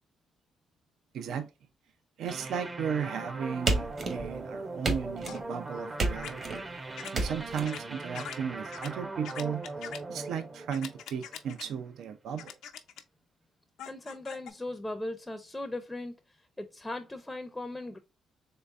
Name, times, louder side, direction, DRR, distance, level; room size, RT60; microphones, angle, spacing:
voice 1, 1.1-1.5 2.2-6.6 7.1-12.5, right 7 dB, 75° right, 0.5 m, -35 dB
sound 1, 2.3-11.6, right 2 dB, 25° right, 0.7 m, -40 dB
sound 2, 3.7-4.4 4.8-5.5 6.0-6.6 7.1-7.6, right 2 dB, 45° right, 1.2 m, -31 dB
sound 3, 5.3-5.4 6.2-6.3 7.0-7.1 7.6-7.8 8.1-8.4 8.7-8.9 9.2-10.0 10.7-11.6 12.4-13.0 13.8-14.5, left 9 dB, 85° left, 0.5 m, -42 dB
voice 2, 13.9-18.0, left 2 dB, 10° left, 0.5 m, -38 dB
3.8 x 3.4 x 2.5 m
cardioid pair, 90°, 0 cm